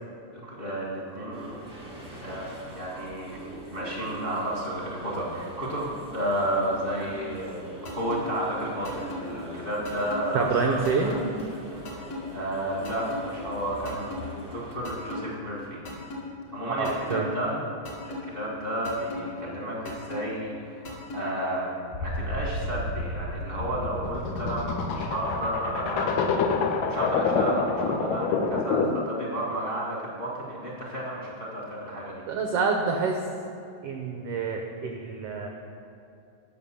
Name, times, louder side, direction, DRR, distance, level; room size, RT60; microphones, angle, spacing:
voice 1, 0.3-1.7 2.2-3.4 3.7-10.7 11.0-11.1 12.3-16.2 16.5-17.6 18.0-21.7 22.0-32.2, right 1 dB, 30° left, -4 dB, 1.0 m, -32 dB
sound 1, 1.3-14.7, right 1 dB, 10° right, 1.0 m, -43 dB
sound 2, 7.9-8.2 8.8-9.2 9.9-10.2 10.9-11.2 11.9-12.2 12.9-13.2 13.9-14.2 14.9-15.2 15.9-16.2 16.9-17.2 17.9-18.2 18.9-19.2 19.9-20.2 20.9-21.2, left 1 dB, 55° left, 3.3 m, -36 dB
voice 2, 10.3-11.1 16.8-17.3 32.3-33.3 33.8-35.5, right 4 dB, 85° right, 2 dB, 1.3 m, -27 dB
sound 3, 21.9-29.1, left 4 dB, 75° left, 2.0 m, -27 dB
11.0 x 6.7 x 7.0 m, 2.6 s
omnidirectional pair, 3.8 m